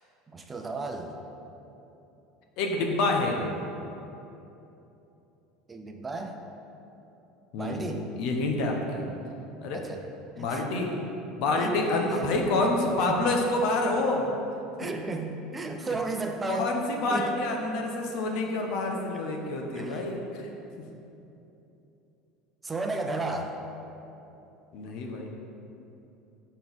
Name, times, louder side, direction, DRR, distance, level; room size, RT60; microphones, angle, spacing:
voice 1, 0.3-1.2 5.7-6.4 7.6-8.1 9.7-10.0 10.4-10.6 11.5-11.8 12.1-12.2 13.0-13.3 14.8-16.8 17.1-17.4 19.1-19.2 19.7-20.0 22.6-23.6, right 3 dB, 20° right, 4 dB, 0.6 m, -34 dB
voice 2, 2.6-3.5 7.5-7.8 8.2-9.1 9.6-9.8 10.4-10.9 11.4-14.3 16.5-20.5 24.7-25.3, left 2 dB, 65° left, 2 dB, 0.9 m, -27 dB
5.9 x 4.3 x 5.4 m, 2.9 s
hypercardioid pair, 80°, 0 cm